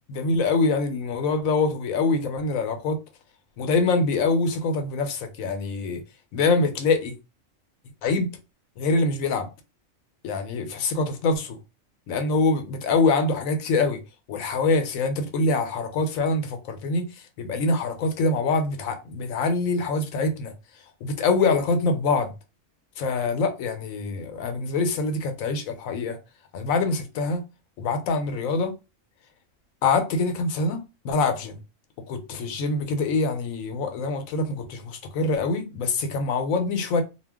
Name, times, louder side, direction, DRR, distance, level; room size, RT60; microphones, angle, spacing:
voice 1, 0.1-3.0 3.6-6.0 6.3-7.1 8.0-8.3 8.8-9.5 10.2-11.6 12.1-14.0 14.3-20.5 21.0-22.3 23.0-26.2 26.5-27.4 27.8-28.7 29.8-31.6 32.1-37.0, left 3 dB, 90° left, 1.1 m, -24 dB
2.4 x 2.2 x 3.4 m
omnidirectional pair, 1.4 m